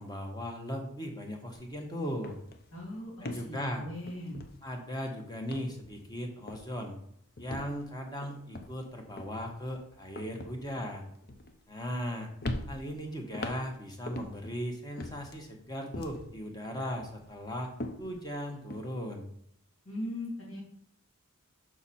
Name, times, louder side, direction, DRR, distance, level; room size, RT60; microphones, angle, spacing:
voice 1, 0.0-2.3 3.2-3.8 4.6-7.0 7.4-11.1 11.7-12.3 12.7-17.7 18.0-19.3, equal, 20° left, 3 dB, 1.0 m, -37 dB
sound 1, 1.5-1.7 2.0-5.0 5.4-6.2 6.5-6.9 7.4-12.1 12.4-14.6 15.0-16.4 16.8-18.8, left 1 dB, 45° left, 0.6 m, -42 dB
voice 2, 2.7-3.1 3.4-4.4 19.8-20.6, left 1 dB, 70° left, -3 dB, 2.7 m, -39 dB
6.2 x 5.9 x 4.2 m, 0.69 s
head